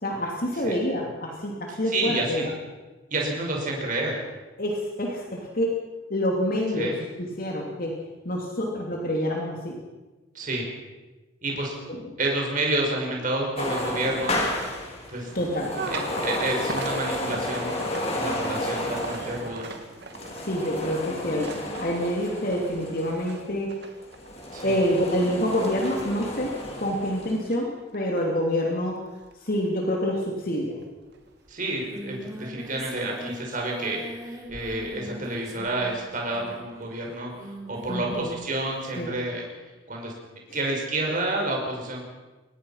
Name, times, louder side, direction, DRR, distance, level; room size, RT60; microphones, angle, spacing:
voice 1, 0.0-2.5 4.6-5.8 6.1-6.9 7.2-8.0 8.2-9.8 11.9-12.0 15.3-15.8 20.3-23.7 24.6-29.0 29.4-30.8 37.9-38.3 38.9-39.1, equal, 50° left, 0 dB, 2.9 m, -27 dB
voice 2, 1.7-2.5 3.1-4.2 6.7-7.0 10.3-10.7 11.4-14.5 15.1-15.3 15.9-17.8 18.1-19.7 24.5-24.8 31.5-39.5 39.9-40.1 40.5-42.0, right 2 dB, 45° right, -1 dB, 5.6 m, -29 dB
sound 1, 13.6-23.4 24.0-27.4, left 1 dB, 35° left, 3.8 m, -32 dB
sound 2, 15.7-30.8 31.1-31.6 32.4-32.5 32.9-33.2, right 3 dB, 60° right, 2.2 m, -41 dB
Singing, 31.2-31.3 31.5-39.2, equal, 15° right, 3.5 m, -41 dB
24.0 x 19.5 x 5.7 m, 1.2 s
head